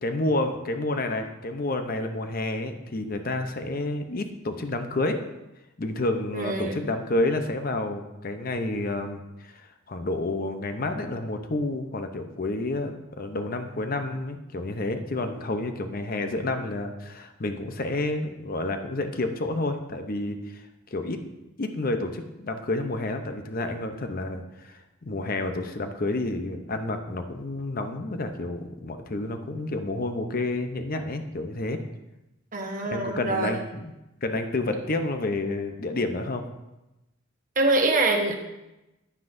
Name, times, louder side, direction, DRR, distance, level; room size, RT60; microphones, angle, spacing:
voice 1, 0.0-5.2 5.8-20.7 20.9-21.2 21.6-31.8 32.9-33.9 34.2-36.4, left 2 dB, 45° left, 7 dB, 0.7 m, -29 dB
voice 2, 6.3-6.8 32.5-33.6 37.6-38.3, right 2 dB, 40° right, 2 dB, 1.2 m, -24 dB
9.9 x 9.4 x 2.6 m, 0.96 s
head